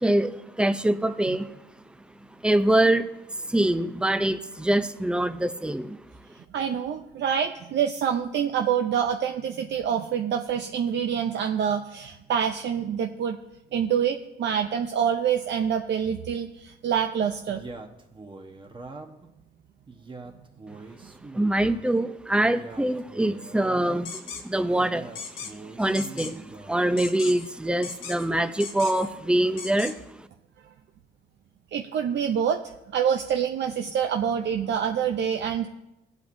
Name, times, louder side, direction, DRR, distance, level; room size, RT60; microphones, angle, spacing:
voice 1, 0.0-1.5 2.4-3.1 3.5-6.0 21.3-25.1 25.8-30.0, right 1 dB, 5° right, 11 dB, 0.6 m, -24 dB
voice 2, 6.5-13.4 13.7-17.6 31.7-32.6 32.9-35.7, right 8 dB, 65° right, 5 dB, 0.6 m, -26 dB
Male speech man speaking, 17.5-19.3 19.9-21.8 22.4-24.1 24.8-26.8, right 3 dB, 25° right, 1.1 m, -43 dB
sound 1, 24.1-24.4 25.2-25.5 25.9-26.3 27.0-27.5 27.8-28.3 28.6-29.1 29.6-29.9, left 5 dB, 85° left, 1.4 m, -37 dB
17.0 x 8.2 x 2.7 m, 0.92 s
cardioid pair, 90°, 20 cm